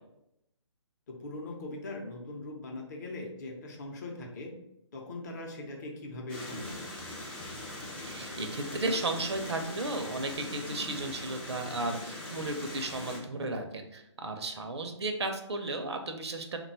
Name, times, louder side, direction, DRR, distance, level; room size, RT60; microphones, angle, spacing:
voice 1, 1.1-4.5 4.9-6.8, left 2 dB, 35° left, 0 dB, 0.7 m, -40 dB
sound 1, 6.3-13.2, left 1 dB, 5° left, 0.4 m, -41 dB
voice 2, 8.1-16.6, right 2 dB, 60° right, 5 dB, 0.5 m, -34 dB
3.7 x 2.3 x 4.1 m, 0.83 s
figure-of-eight pair, 145°, 16 cm